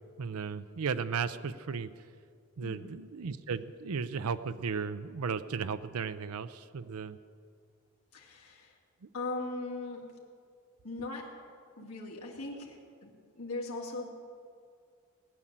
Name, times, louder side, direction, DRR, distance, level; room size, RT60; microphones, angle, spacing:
voice 1, 0.2-1.9 2.6-7.2 9.0-9.1 11.8-11.9, right 5 dB, 85° right, 12 dB, 0.5 m, -35 dB
voice 2, 2.6-2.9 8.1-8.7 9.1-10.1 10.8-11.3 11.8-14.1, left 2 dB, 90° left, -2 dB, 2.5 m, -39 dB
18.0 x 10.0 x 7.4 m, 2.2 s
head